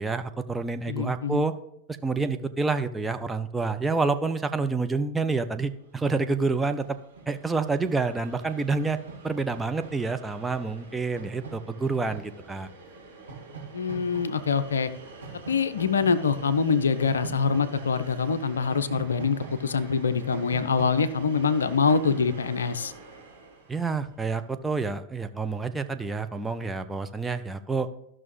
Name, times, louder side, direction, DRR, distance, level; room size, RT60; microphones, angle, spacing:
voice 1, 0.0-1.5 2.0-7.0 7.3-9.0 9.2-12.7 23.7-27.9, right 3 dB, 10° right, 7 dB, 0.5 m, -28 dB
voice 2, 0.9-1.4 13.7-14.9 15.5-22.9, left 5 dB, 70° left, 13 dB, 0.5 m, -25 dB
Train, 5.8-5.9 6.0-24.4, right 4 dB, 75° right, 1.9 m, -44 dB
13.5 x 6.0 x 3.1 m, 0.80 s
figure-of-eight pair, 90°, 0 cm